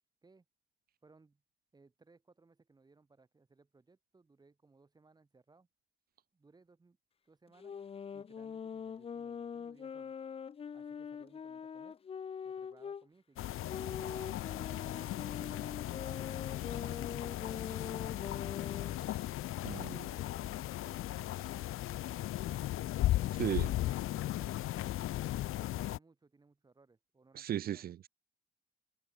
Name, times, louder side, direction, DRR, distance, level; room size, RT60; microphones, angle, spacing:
voice 1, 1.0-1.4 1.7-5.7 6.3-7.0 7.2-7.7 8.1-10.1 10.7-12.0 12.4-15.5 16.0-18.9 19.6-24.9 25.7-27.9, right 3 dB, 20° right, 4.2 m, -64 dB
sound 1, 7.6-13.1 13.7-19.0, left 7 dB, 25° left, 0.5 m, -43 dB
sound 2, 13.4-26.0, left 14 dB, 80° left, 0.6 m, -36 dB
voice 2, 19.6-20.0 23.4-23.7 27.3-28.1, right 11 dB, 45° right, 0.4 m, -36 dB
wide cardioid pair, 175°, 21 cm